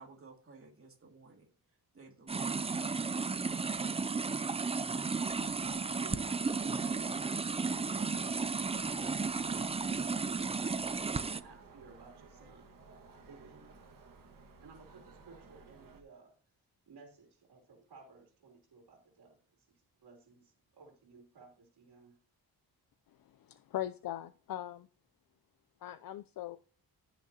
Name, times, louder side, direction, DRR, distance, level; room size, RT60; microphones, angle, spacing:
voice 1, 0.0-1.5 1.9-3.3 4.1-4.5, right 4 dB, 35° right, 3 dB, 2.4 m, -55 dB
sound 1, 2.3-11.4, right 4 dB, 15° right, 0.4 m, -34 dB
sound 2, 5.2-16.0, right 4 dB, 55° right, 1.7 m, -56 dB
voice 2, 5.6-12.7 13.2-13.7 14.6-16.3 16.9-19.4 20.0-22.2, right 4 dB, 90° right, 0 dB, 3.1 m, -56 dB
voice 3, 23.5-24.9 25.8-26.6, left 12 dB, 65° left, 12 dB, 0.5 m, -40 dB
15.0 x 6.1 x 2.8 m, 0.41 s
wide cardioid pair, 140°, 38 cm